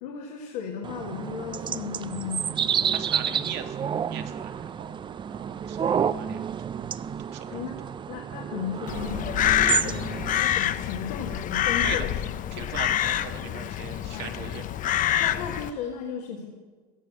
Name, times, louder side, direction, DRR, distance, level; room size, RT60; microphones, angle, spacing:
voice 1, 0.0-2.7 7.5-7.8 8.1-10.0 10.4-12.1 12.5-12.7 14.1-14.3 15.2-16.5, left 7 dB, 80° left, 0 dB, 1.8 m, -35 dB
sound 1, 0.8-10.4, right 8 dB, 25° right, 0.4 m, -30 dB
voice 2, 2.9-5.0 5.3-6.4 6.7-7.6 11.8-12.1 12.5-14.6, right 8 dB, 60° right, 5 dB, 1.5 m, -40 dB
Crow, 8.9-15.7, left 11 dB, 40° left, 0.6 m, -26 dB
16.0 x 6.3 x 7.7 m, 1.4 s
supercardioid pair, 100°, 21 cm